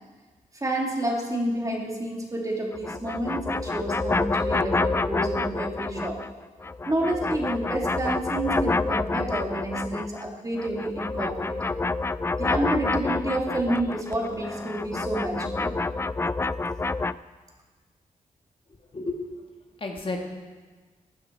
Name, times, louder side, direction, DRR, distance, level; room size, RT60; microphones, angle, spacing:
voice 1, 0.6-6.2 6.8-11.7 12.4-15.8, right 1 dB, 25° right, -1 dB, 3.1 m, -29 dB
sound 1, 2.7-6.3 6.6-10.3 10.6-17.1, left 3 dB, 20° left, 0.3 m, -28 dB
voice 2, 18.9-19.4 19.8-20.2, left 2 dB, 40° left, 1 dB, 1.7 m, -31 dB
16.0 x 9.6 x 4.8 m, 1.4 s
cardioid pair, 60°, 14 cm